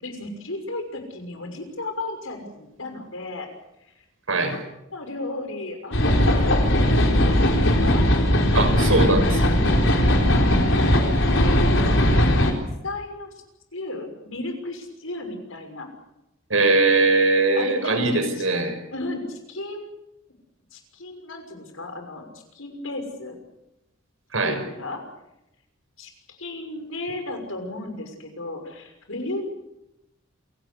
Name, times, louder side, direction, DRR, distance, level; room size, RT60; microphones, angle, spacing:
voice 1, 0.0-3.5 3.9-4.0 4.5-4.6 4.9-7.0 7.7-9.5 9.9-12.0 12.3-12.5 12.8-13.3 13.7-15.9 17.5-18.5 18.9-19.9 20.7-23.4 24.4-25.0 26.0-29.5, left 2 dB, 90° left, 5 dB, 6.2 m, -35 dB
sound 1, 5.9-12.5, left 1 dB, 65° left, 4.6 m, -19 dB
voice 2, 8.5-9.3 16.5-18.7 24.3-24.6, right 3 dB, 85° right, 7 dB, 5.6 m, -20 dB
28.0 x 18.0 x 8.3 m, 0.88 s
head